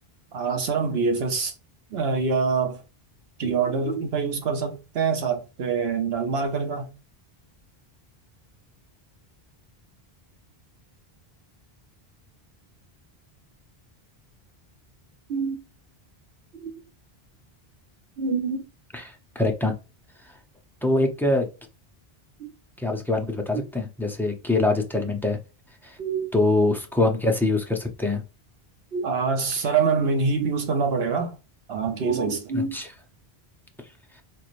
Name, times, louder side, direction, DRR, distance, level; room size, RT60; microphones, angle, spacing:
voice 1, 0.3-1.5 1.9-2.8 3.4-6.9 15.3-15.6 16.6-16.7 18.2-18.7 22.4-22.5 26.0-26.3 28.9-31.4 31.7-32.8, right 5 dB, 75° right, 1.1 m, -25 dB
voice 2, 18.9-19.7 20.8-21.5 22.8-25.4 25.8-26.0 26.3-28.2 32.5-32.9, left 2 dB, 5° left, 0.5 m, -24 dB
4.1 x 3.1 x 2.5 m
omnidirectional pair, 1.0 m